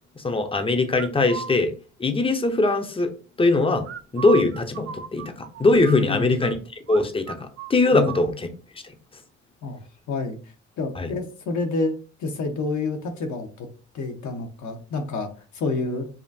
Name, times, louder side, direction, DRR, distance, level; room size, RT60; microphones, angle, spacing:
voice 1, 0.2-1.7 2.0-3.8 4.1-5.2 5.6-6.6 6.9-8.5 11.0-11.1, left 2 dB, 20° left, 0.8 m, -21 dB
sound 1, 0.9-1.5 3.8-6.5 6.9-7.0 7.3-8.2, right 8 dB, 50° right, 0.5 m, -36 dB
voice 2, 5.9-6.5 7.9-8.2 9.6-9.8 10.1-10.4 10.8-11.9 12.2-13.7 13.9-16.1, left 3 dB, 70° left, 1.2 m, -28 dB
7.1 x 2.5 x 2.8 m
cardioid pair, 90°, 30 cm